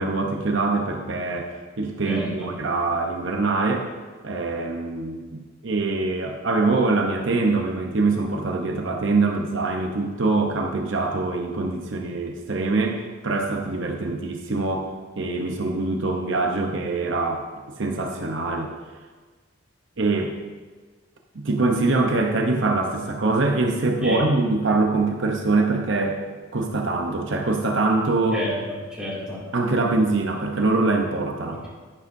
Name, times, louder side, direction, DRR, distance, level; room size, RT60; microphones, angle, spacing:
voice 1, 0.0-3.9 4.2-17.5 17.8-18.7 20.0-20.4 21.3-26.2 26.5-28.4 29.5-31.6, right 3 dB, 65° right, 2 dB, 0.8 m, -24 dB
voice 2, 2.1-2.5 24.0-24.3 28.3-29.4 31.5-31.7, equal, 5° right, -7 dB, 2.4 m, -30 dB
11.0 x 10.5 x 2.6 m, 1.4 s
head